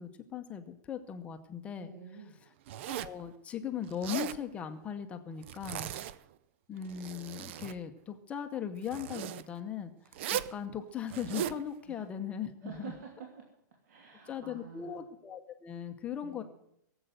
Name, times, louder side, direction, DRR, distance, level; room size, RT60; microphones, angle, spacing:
voice 1, 0.0-1.9 2.4-2.5 2.8-5.9 6.7-12.9 14.3-16.4, left 8 dB, 10° left, 6 dB, 0.8 m, -39 dB
voice 2, 1.8-2.4 11.9-12.0 12.6-13.4 13.8-15.0 16.2-16.4, right 6 dB, 60° right, 0 dB, 2.9 m, -48 dB
Zipper (clothing), 2.7-3.2 3.9-4.4 5.4-6.3 6.8-7.8 8.8-9.4 10.1-10.6 11.1-11.6, right 11 dB, 40° right, 0.5 m, -38 dB
17.5 x 8.0 x 7.9 m, 0.74 s
supercardioid pair, 180°, 10 cm